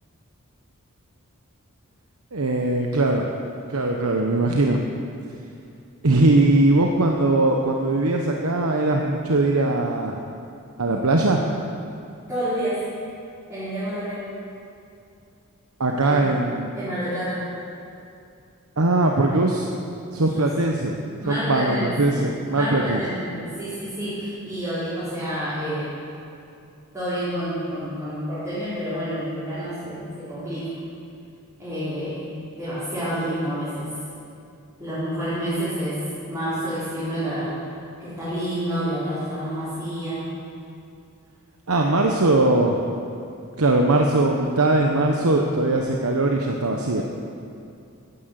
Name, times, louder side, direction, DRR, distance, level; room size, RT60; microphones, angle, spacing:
voice 1, 2.3-3.2 3.7-4.8 6.0-10.2 10.8-11.4 15.8-16.7 18.8-19.7 20.1-20.9 21.3-23.0 41.7-42.8 43.6-47.0, right 2 dB, 85° right, 1 dB, 1.1 m, -20 dB
voice 2, 12.2-12.8 13.5-14.3 16.0-16.2 16.7-17.4 20.2-20.4 21.2-25.9 26.9-30.7 31.6-33.9 34.8-36.0 36.3-37.5 38.0-40.3, equal, 10° right, -14 dB, 4.5 m, -29 dB
14.5 x 10.0 x 8.2 m, 2.6 s
head